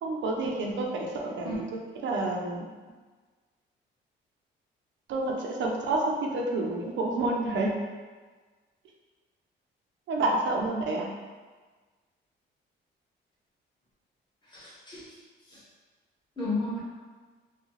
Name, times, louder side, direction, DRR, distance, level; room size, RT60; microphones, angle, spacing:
voice 1, 0.0-1.6 2.0-2.6 5.1-7.7 10.1-11.1, right 2 dB, 70° right, 0 dB, 0.6 m, -29 dB
voice 2, 14.5-15.1 15.5-15.6 16.4-16.8, left 2 dB, 20° left, -9 dB, 1.5 m, -33 dB
3.7 x 2.3 x 3.1 m, 1.4 s
cardioid pair, 90°, 20 cm